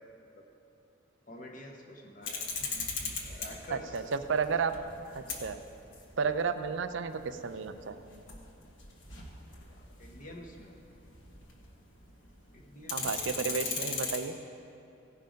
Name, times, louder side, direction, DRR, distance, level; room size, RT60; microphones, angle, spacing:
voice 1, 1.3-2.5 3.2-4.0 4.4-4.5 9.8-10.7 12.5-13.0, left 1 dB, 40° left, 1 dB, 1.1 m, -48 dB
sound 1, 2.2-11.8 12.1-12.2 12.5-14.2, left 4 dB, 65° left, 1.3 m, -38 dB
voice 2, 3.7-4.7 5.1-5.6 6.2-7.9 12.9-14.4, right 5 dB, 65° right, 10 dB, 0.5 m, -32 dB
16.0 x 5.7 x 5.1 m, 2.8 s
head